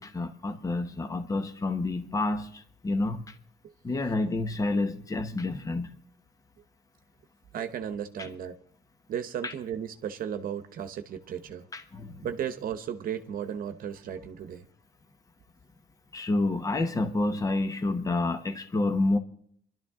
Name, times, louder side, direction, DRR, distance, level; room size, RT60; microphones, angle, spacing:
voice 1, 0.0-3.3 3.8-6.0 8.2-8.3 9.4-9.5 11.7-12.3 16.1-19.2, left 2 dB, 20° left, 1.0 m, -29 dB
voice 2, 7.5-8.6 9.1-11.7 12.2-14.7, right 8 dB, 60° right, 1.1 m, -35 dB
25.0 x 12.0 x 3.7 m
cardioid pair, 110°, 17 cm